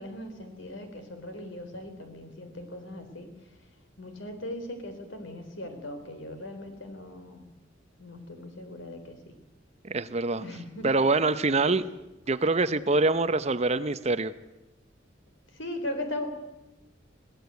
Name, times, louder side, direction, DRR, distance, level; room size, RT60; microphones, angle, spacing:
voice 1, 0.0-3.3 4.0-7.4 8.0-9.3 10.4-10.9 11.7-11.8 15.5-16.3, left 1 dB, 70° left, 7 dB, 3.8 m, -38 dB
voice 2, 9.8-10.4 10.8-11.8 12.3-14.3, right 3 dB, 35° right, 13 dB, 0.8 m, -25 dB
23.0 x 16.0 x 8.2 m, 0.98 s
head